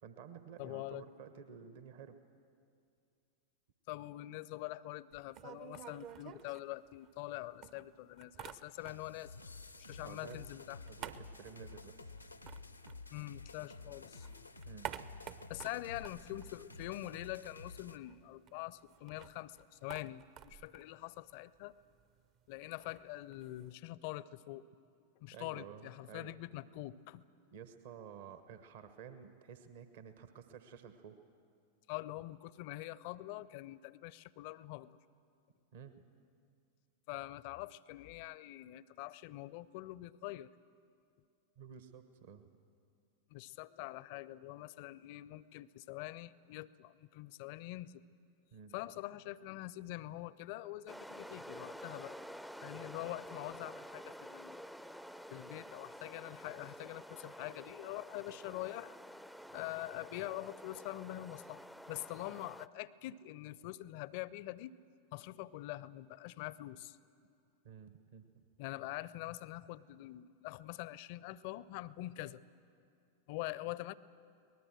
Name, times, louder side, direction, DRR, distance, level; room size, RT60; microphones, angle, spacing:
voice 1, 0.0-2.2 10.0-10.4 10.9-12.1 14.6-14.9 25.3-26.4 27.5-31.2 35.7-35.9 41.6-42.5 48.5-48.7 67.6-68.5, right 7 dB, 55° right, 10 dB, 1.1 m, -52 dB
voice 2, 0.6-1.1 3.9-9.3 9.8-10.8 13.1-14.5 15.5-21.8 22.5-24.7 25.2-27.2 31.9-35.0 37.1-40.5 43.3-48.0 48.7-52.2 52.6-54.7 55.3-59.0 59.5-64.8 65.1-67.0 68.6-72.4 73.3-73.9, left 16 dB, 45° left, 20 dB, 0.5 m, -45 dB
sound 1, 5.1-7.3 7.6-9.2 9.5-13.7 14.0-17.3 17.6-17.7 17.9-23.7, right 9 dB, 40° right, 0.7 m, -51 dB
sound 2, 8.8-18.0, left 3 dB, 85° left, 0.7 m, -52 dB
sound 3, 50.9-62.7, equal, ahead, 0.5 m, -50 dB
23.0 x 19.5 x 7.6 m, 2.4 s
figure-of-eight pair, 90°, 0 cm